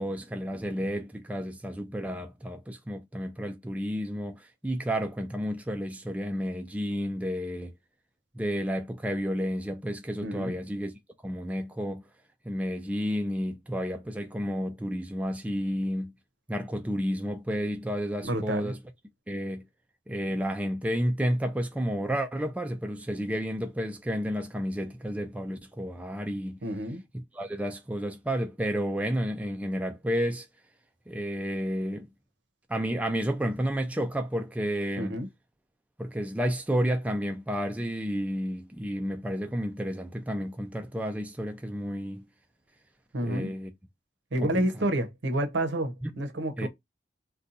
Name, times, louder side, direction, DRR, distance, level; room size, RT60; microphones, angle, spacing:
voice 1, 0.0-7.7 8.3-10.9 11.2-12.0 12.5-16.1 16.5-18.8 19.3-19.6 20.1-26.6 27.3-30.5 31.1-32.1 32.7-35.2 36.0-42.2 43.2-43.7 44.4-44.6 46.0-46.1 46.6-46.7, equal, 10° right, 0.3 m, -31 dB
voice 2, 10.2-10.6 18.2-18.7 26.6-27.0 35.0-35.3 43.1-43.5 44.3-46.7, right 1 dB, 85° right, 0.7 m, -29 dB
2.6 x 2.2 x 3.9 m
head